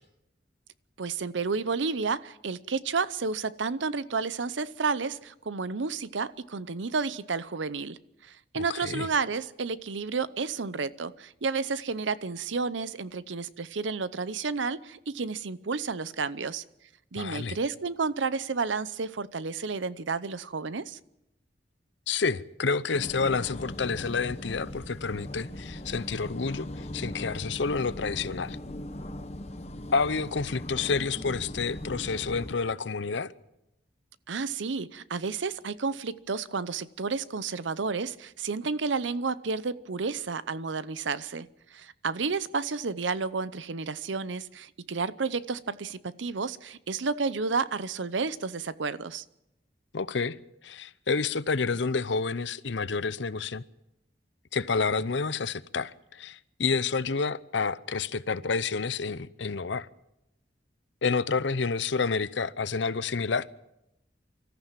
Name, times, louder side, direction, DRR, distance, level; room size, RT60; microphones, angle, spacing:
voice 1, 1.0-8.0 8.2-16.6 17.1-21.0 34.3-49.2, right 4 dB, 90° right, 0.7 m, -31 dB
voice 2, 8.5-9.1 17.1-17.6 22.1-28.6 29.9-33.3 49.9-50.4 50.6-53.6 54.5-59.9 61.0-63.5, left 4 dB, 80° left, 0.7 m, -29 dB
sound 1, 22.9-32.5, left 1 dB, 35° left, 1.1 m, -39 dB
25.0 x 14.0 x 7.5 m
head